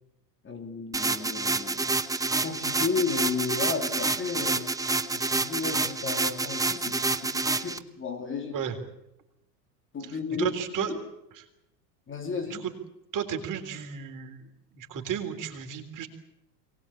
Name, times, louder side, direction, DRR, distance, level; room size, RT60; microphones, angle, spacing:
voice 1, 0.4-2.0 2.4-4.7 5.1-8.6 9.9-11.0 12.1-12.7, left 5 dB, 25° left, 3.0 m, -33 dB
sound 1, 0.9-7.8, right 3 dB, 5° right, 1.0 m, -28 dB
voice 2, 10.4-10.9 13.1-14.4 14.7-16.1, right 8 dB, 40° right, 3.7 m, -33 dB
23.5 x 19.5 x 8.7 m
hypercardioid pair, 95°, 49 cm